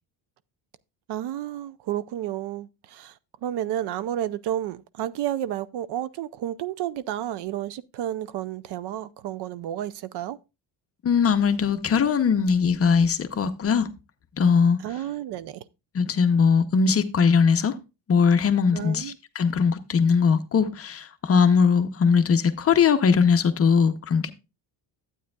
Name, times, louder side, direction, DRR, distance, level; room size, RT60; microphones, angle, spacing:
voice 1, 1.1-10.4 14.8-15.6 18.7-19.2, right 12 dB, 65° right, 0.5 m, -31 dB
voice 2, 11.0-13.9 14.4-14.8 15.9-17.7 18.1-24.3, left 6 dB, 30° left, 0.6 m, -20 dB
12.0 x 8.7 x 2.2 m
cardioid pair, 160°, 45 cm